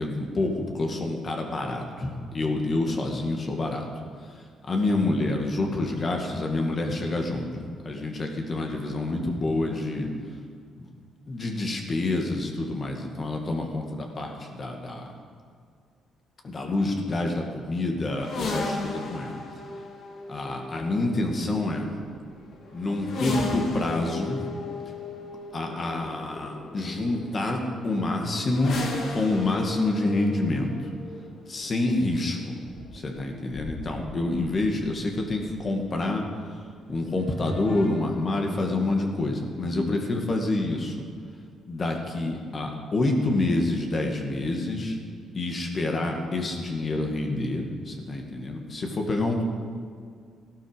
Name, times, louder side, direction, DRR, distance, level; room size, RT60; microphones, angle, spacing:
voice 1, 0.0-3.9 4.3-10.1 10.8-10.9 11.3-15.1 16.4-19.4 20.3-21.9 22.7-24.4 25.5-28.8 29.1-30.9 31.5-32.6 32.9-36.2 36.9-40.9 41.7-45.0 45.3-49.4, left 2 dB, 40° left, 2 dB, 2.2 m, -27 dB
sound 1, 18.1-35.9 36.9-37.9, left 3 dB, 65° left, 2.4 m, -37 dB
14.5 x 12.0 x 5.3 m, 2.1 s
cardioid pair, 75°, 0 cm